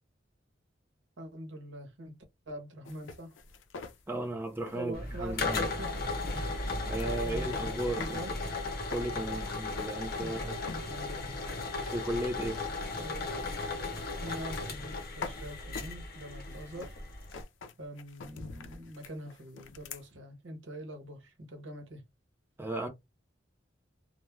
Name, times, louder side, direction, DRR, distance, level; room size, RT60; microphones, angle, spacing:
voice 1, 1.2-2.2 2.5-3.3 4.7-6.0 7.0-8.3 10.2-11.4 13.0-13.4 14.2-17.0 17.8-22.0, right 1 dB, 80° right, 0.9 m, -44 dB
sound 1, 2.8-8.2 8.5-10.4 10.7-11.1 11.5-20.0, left 4 dB, 85° left, 0.5 m, -46 dB
voice 2, 4.1-5.7 6.3-6.5 6.9-8.2 8.9-10.6 11.8-12.6 22.6-22.9, right 1 dB, 10° right, 0.6 m, -35 dB
sound 2, 4.9-17.4, left 3 dB, 55° left, 0.7 m, -36 dB
2.2 x 2.2 x 3.1 m
head